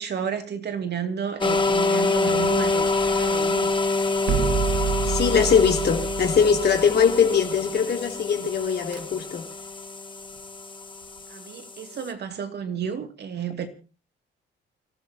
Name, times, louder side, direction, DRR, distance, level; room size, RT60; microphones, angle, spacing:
voice 1, 0.0-3.7 11.3-13.7, right 7 dB, 60° right, 2.6 m, -32 dB
sound 1, 1.4-12.1, left 3 dB, 25° left, 1.7 m, -26 dB
sound 2, 2.2-3.5 4.3-7.6 8.7-9.0, right 8 dB, 80° right, 1.6 m, -29 dB
voice 2, 5.0-9.5, left 6 dB, 55° left, 3.0 m, -21 dB
29.0 x 13.5 x 2.9 m
cardioid pair, 90°, 20 cm